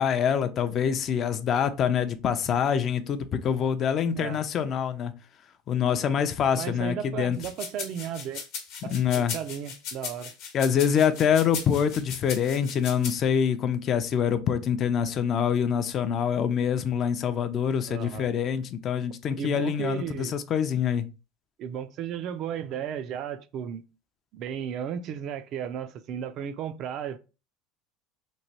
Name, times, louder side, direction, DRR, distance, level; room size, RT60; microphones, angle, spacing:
voice 1, 0.0-5.1 5.7-7.4 8.8-9.3 10.5-21.1, left 8 dB, 40° left, 0.4 m, -25 dB
voice 2, 6.5-8.4 8.8-10.3 17.9-18.3 19.4-20.3 21.6-23.8 24.3-27.2, right 9 dB, 55° right, 0.3 m, -34 dB
sound 1, 7.3-13.1, left 6 dB, 65° left, 0.9 m, -37 dB
3.0 x 2.2 x 2.8 m
supercardioid pair, 110°, 0 cm